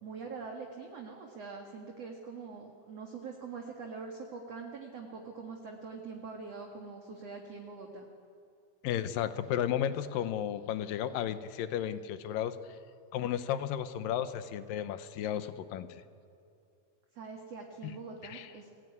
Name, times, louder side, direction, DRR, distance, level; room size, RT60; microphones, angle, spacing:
voice 1, 0.0-8.1 17.1-18.7, right 4 dB, 50° right, 1 dB, 2.6 m, -44 dB
voice 2, 8.8-12.6 13.1-15.9 17.8-18.0 18.2-18.5, left 10 dB, 70° left, 12 dB, 2.5 m, -33 dB
30.0 x 19.0 x 9.6 m, 2.4 s
omnidirectional pair, 4.4 m